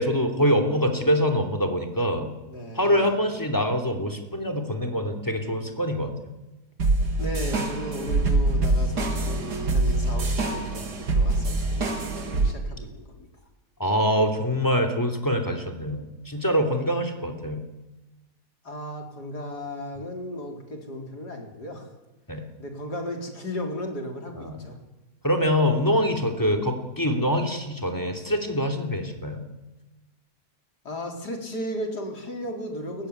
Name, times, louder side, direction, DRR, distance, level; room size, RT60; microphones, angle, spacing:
voice 1, 0.0-2.3 2.7-6.1 13.8-17.6 22.3-22.4 24.3-24.6 25.2-29.4, equal, 10° left, 6 dB, 3.1 m, -24 dB
voice 2, 2.5-3.1 7.2-11.9 12.2-13.3 18.6-21.9 22.6-24.8 30.8-33.1, equal, 75° left, 3 dB, 4.6 m, -35 dB
sound 1, 6.8-12.5, right 2 dB, 75° right, 2.7 m, -24 dB
29.5 x 15.0 x 9.7 m, 1.0 s
omnidirectional pair, 1.7 m